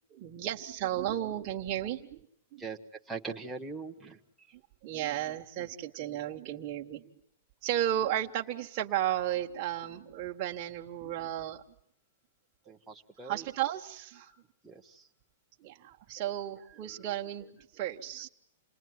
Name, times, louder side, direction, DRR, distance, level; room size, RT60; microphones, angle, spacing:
voice 1, 0.1-2.2 2.5-2.7 4.5-7.1 7.6-11.6 13.2-14.3 15.6-18.3, right 12 dB, 30° right, 0 dB, 1.4 m, -34 dB
voice 2, 3.1-4.5 12.7-13.4 14.2-15.1 16.9-17.0, right 4 dB, 5° right, 0 dB, 1.3 m, -42 dB
28.5 x 20.5 x 9.5 m, 0.72 s
hypercardioid pair, 165°, 0 cm